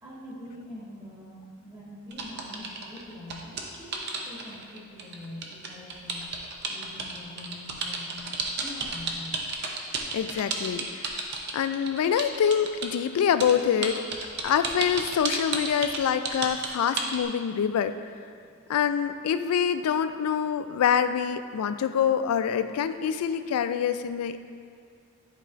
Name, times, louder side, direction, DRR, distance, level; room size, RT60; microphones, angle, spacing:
voice 1, 0.0-6.4 6.7-10.1 18.4-18.5, left 1 dB, 20° right, -7 dB, 1.3 m, -44 dB
sound 1, 2.1-13.0 13.4-17.2, right 4 dB, 50° right, 0.6 m, -32 dB
voice 2, 10.1-11.2 11.5-14.0 14.4-17.9 18.7-24.4, left 8 dB, 85° left, 12 dB, 0.3 m, -25 dB
10.5 x 4.4 x 2.5 m, 2.2 s
head